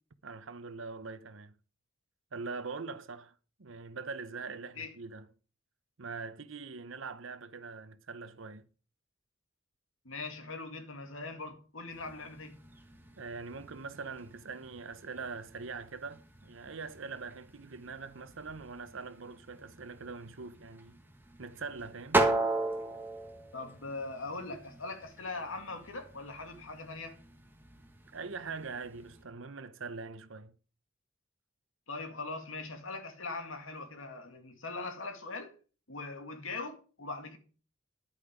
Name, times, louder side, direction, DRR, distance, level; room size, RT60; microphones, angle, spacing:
voice 1, 0.2-1.6 2.3-3.3 3.6-5.3 6.0-8.7 13.2-21.0 21.4-22.3 28.1-30.6, right 4 dB, 70° right, 0.8 m, -43 dB
voice 2, 10.1-12.6 23.5-27.2 31.9-35.5 35.9-37.4, left 3 dB, 80° left, 2.1 m, -41 dB
sound 1, 11.9-29.2, right 2 dB, 10° right, 1.6 m, -38 dB
10.5 x 8.6 x 5.1 m
head